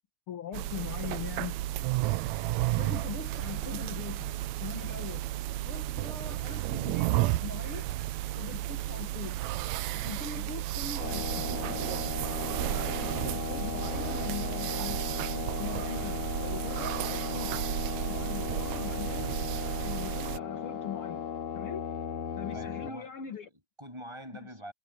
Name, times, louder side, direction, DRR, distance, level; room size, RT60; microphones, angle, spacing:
voice 1, 0.3-1.6 2.8-5.3 5.7-7.9 8.4-9.4 9.9-11.8 12.4-15.0 15.3-17.5 18.1-19.4 19.8-21.3 21.5-21.9 22.4-23.5, left 8 dB, 50° left, 2.1 m, -41 dB
sound 1, 0.5-20.4, right 16 dB, 75° right, 1.7 m, -33 dB
sound 2, 11.0-22.9, left 7 dB, 70° left, 4.1 m, -37 dB
voice 2, 22.5-24.7, equal, 10° right, 7.1 m, -46 dB
omnidirectional pair, 3.7 m